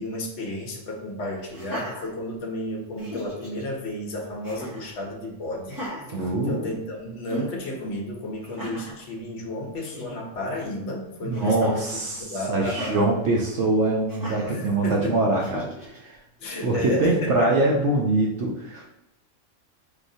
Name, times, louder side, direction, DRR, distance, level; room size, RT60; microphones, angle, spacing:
voice 1, 0.0-5.8 6.5-11.9 12.2-13.1 14.5-15.2 16.4-17.5, left 1 dB, 65° left, -1 dB, 1.0 m, -32 dB
Laughter, 1.5-2.6 3.0-3.6 4.4-4.9 5.6-6.9 7.3-7.5 8.4-9.0 9.5-9.6 9.8-10.2 11.3-11.9 12.6-13.0 14.1-14.6 15.4-16.0, equal, 20° right, 0.8 m, -38 dB
voice 2, 6.1-6.7 11.2-16.2 16.6-18.9, right 2 dB, 70° right, -2 dB, 0.9 m, -24 dB
4.8 x 2.8 x 2.6 m, 0.91 s
omnidirectional pair, 1.3 m